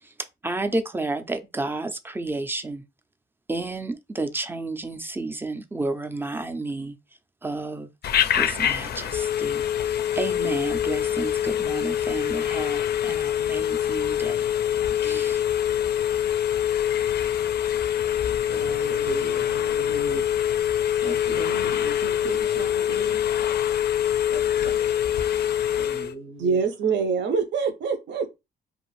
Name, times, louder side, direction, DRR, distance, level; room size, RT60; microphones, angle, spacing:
voice 1, 0.4-2.8 3.5-7.0 7.4-7.9 8.3-14.6 15.0-15.4, right 2 dB, 10° right, 0.4 m, -31 dB
Telephone, 8.0-26.1, left 10 dB, 55° left, 0.4 m, -24 dB
voice 2, 18.4-23.3 24.3-24.7 25.0-26.6, right 3 dB, 85° right, 1.1 m, -37 dB
voice 3, 26.4-28.4, right 5 dB, 65° right, 0.7 m, -24 dB
2.5 x 2.4 x 3.1 m
cardioid pair, 90°, 20 cm